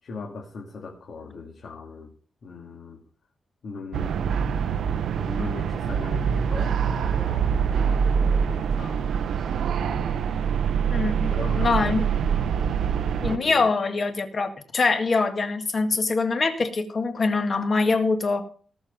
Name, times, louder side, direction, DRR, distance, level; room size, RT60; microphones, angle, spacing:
voice 1, 0.0-2.1 2.4-3.0 3.6-10.8 11.3-12.4 13.2-13.7, left 3 dB, 55° left, 0 dB, 2.3 m, -39 dB
sound 1, 3.9-13.4, right 7 dB, 80° right, 0.8 m, -24 dB
voice 2, 10.9-12.1 13.2-18.4, left 4 dB, 35° left, 6 dB, 1.7 m, -24 dB
18.0 x 7.1 x 5.4 m, 0.43 s
wide cardioid pair, 165°, 0 cm